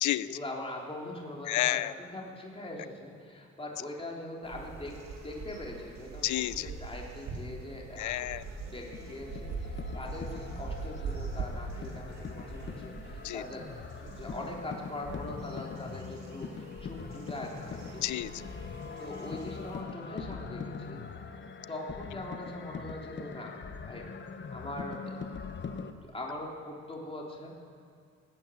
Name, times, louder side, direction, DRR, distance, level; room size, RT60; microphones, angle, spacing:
voice 1, 0.3-4.9 5.2-8.3 8.7-13.7 14.0-18.0 19.0-21.0 21.7-23.5 23.8-24.0 24.5-25.0 25.6-27.5, left 1 dB, 20° left, -2 dB, 3.4 m, -42 dB
voice 2, 1.5-1.9 6.2-6.7 8.0-8.4 13.2-13.4 18.0-18.4, left 15 dB, 75° left, 17 dB, 0.6 m, -30 dB
sound 1, 4.4-19.8, right 4 dB, 65° right, 2.9 m, -43 dB
sound 2, 7.7-25.9, left 5 dB, 40° left, 1.0 m, -42 dB
19.0 x 8.5 x 8.4 m, 2.3 s
cardioid pair, 90°, 30 cm